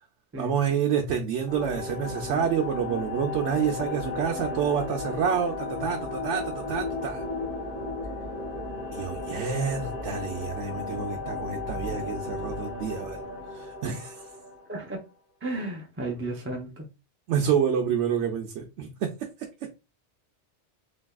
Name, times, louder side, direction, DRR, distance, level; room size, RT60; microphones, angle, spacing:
voice 1, 0.3-7.2 8.9-13.2 13.5-14.3 17.3-19.1 19.4-19.7, right 7 dB, 90° right, 0.9 m, -28 dB
sound 1, 1.5-15.0, left 3 dB, 50° left, 1.3 m, -35 dB
voice 2, 15.4-16.9, right 2 dB, 20° right, 0.3 m, -33 dB
3.4 x 2.7 x 2.2 m
omnidirectional pair, 1.2 m